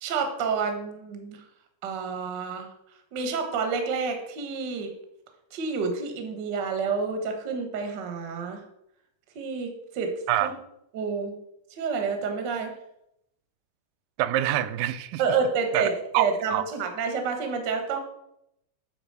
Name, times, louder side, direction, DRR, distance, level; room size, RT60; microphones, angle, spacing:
voice 1, 0.0-1.4 1.8-2.7 3.1-4.9 5.5-8.6 9.3-10.1 10.4-10.5 10.9-11.3 11.7-12.7 15.2-18.0, right 5 dB, 55° right, 5 dB, 1.2 m, -29 dB
voice 2, 14.2-15.2 15.7-15.9 16.1-16.2 16.5-16.6, right 13 dB, 85° right, 12 dB, 2.2 m, -25 dB
8.9 x 4.0 x 6.6 m, 0.79 s
omnidirectional pair, 3.8 m